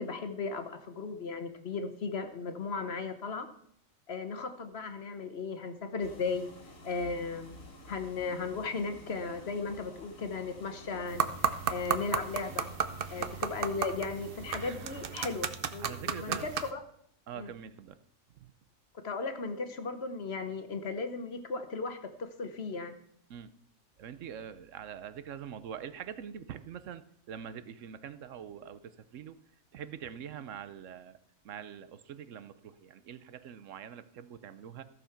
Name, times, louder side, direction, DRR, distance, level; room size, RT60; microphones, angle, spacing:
voice 1, 0.0-3.5 4.1-6.5 6.8-7.6 7.9-12.7 13.1-16.8 17.3-17.5 19.0-23.0, left 4 dB, 55° left, 8 dB, 1.2 m, -36 dB
sound 1, 6.0-15.1, left 1 dB, 85° left, 2.5 m, -51 dB
sound 2, 11.1-16.7, right 7 dB, 50° right, 0.8 m, -34 dB
voice 2, 15.8-16.5 17.3-18.0 18.4-18.5 23.3-23.5 24.0-29.4 29.7-31.2 31.4-34.8, right 8 dB, 75° right, 13 dB, 1.0 m, -44 dB
14.5 x 6.8 x 5.8 m, 0.69 s
omnidirectional pair, 1.4 m